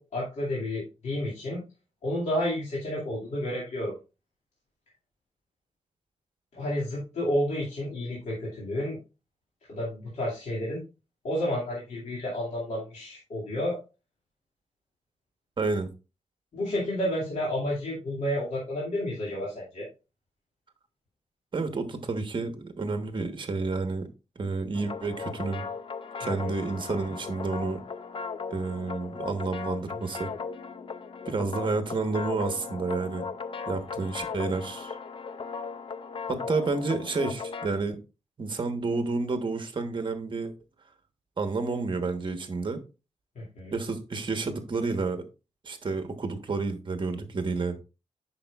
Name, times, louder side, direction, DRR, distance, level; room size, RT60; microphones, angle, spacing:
voice 1, 0.0-1.6 2.0-3.9 6.5-9.0 9.7-10.8 11.2-13.8 16.5-19.9 26.2-26.5 43.4-43.7, left 1 dB, 75° left, -5 dB, 2.3 m, -31 dB
voice 2, 15.6-15.9 21.5-24.1 24.4-25.7 26.2-27.8 28.5-30.3 31.2-33.3 33.7-35.0 36.3-38.0 38.4-40.5 41.4-42.8 43.7-45.2 45.6-47.8, right 3 dB, 40° right, 7 dB, 1.1 m, -30 dB
sound 1, 24.7-37.7, left 5 dB, 45° left, 0.5 m, -37 dB
8.5 x 6.1 x 2.4 m, 0.30 s
wide cardioid pair, 120°, 12 cm